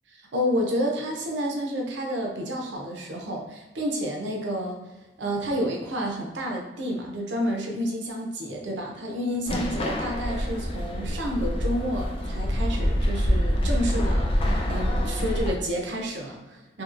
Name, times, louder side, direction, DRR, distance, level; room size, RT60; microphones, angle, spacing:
voice 1, 0.3-4.8 5.2-14.4 14.7-16.8, equal, 80° right, 0 dB, 0.6 m, -30 dB
sound 1, 9.5-15.5, equal, 30° left, 0.4 m, -26 dB
2.8 x 2.8 x 2.5 m, 1.1 s
head